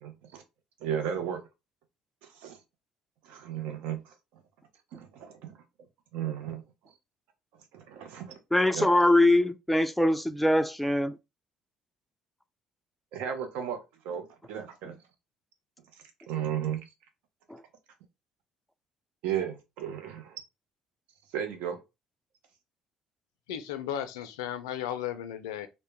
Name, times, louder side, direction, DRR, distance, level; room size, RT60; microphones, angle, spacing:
voice 1, 0.0-0.4 0.8-1.4 2.2-2.6 3.2-4.1 4.9-5.6 6.1-6.6 7.7-8.4 8.7-8.9 13.1-13.8 14.0-15.0 16.3-16.8 19.2-20.4 21.3-21.8, right 9 dB, 75° right, 0.5 m, -34 dB
voice 2, 8.5-11.2 17.5-17.6, left 1 dB, 5° left, 0.3 m, -23 dB
voice 3, 23.5-25.7, left 10 dB, 85° left, 0.3 m, -35 dB
2.1 x 2.1 x 2.9 m
hypercardioid pair, 60°, 2 cm